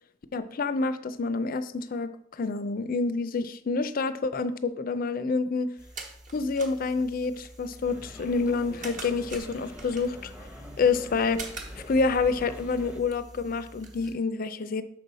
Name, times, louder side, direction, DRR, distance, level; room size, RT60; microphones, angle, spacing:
voice 1, 0.3-5.7 6.3-10.3 10.8-11.4 11.7-14.8, left 4 dB, 50° left, 12 dB, 0.4 m, -28 dB
sound 1, 5.8-14.2, right 2 dB, 40° right, 1.1 m, -44 dB
sound 2, 7.8-13.0, equal, 5° right, 0.8 m, -46 dB
6.6 x 5.4 x 4.0 m, 0.71 s
head